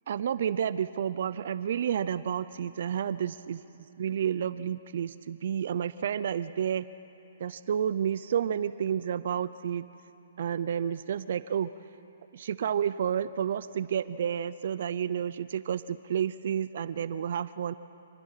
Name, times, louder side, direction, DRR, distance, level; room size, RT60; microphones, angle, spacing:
voice 1, 0.1-3.6 4.0-6.9 7.4-9.9 10.4-11.7 12.3-17.7, right 8 dB, 60° right, 15 dB, 0.5 m, -30 dB
27.0 x 20.5 x 5.8 m, 2.8 s
hypercardioid pair, 150°, 0 cm